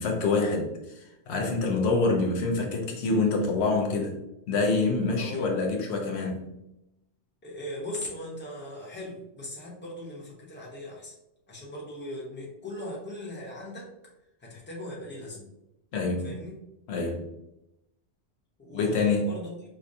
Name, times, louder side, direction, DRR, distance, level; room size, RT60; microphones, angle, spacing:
voice 1, 0.0-4.2 4.5-6.5 15.9-16.4 16.9-17.3 18.7-19.2, left 3 dB, 80° left, 1 dB, 0.9 m, -26 dB
voice 2, 5.1-5.5 7.4-11.1 11.5-13.9 14.4-15.5 16.2-16.6 18.6-19.5, left 1 dB, 10° left, -5 dB, 0.9 m, -39 dB
4.9 x 2.2 x 2.7 m, 0.88 s
omnidirectional pair, 1.1 m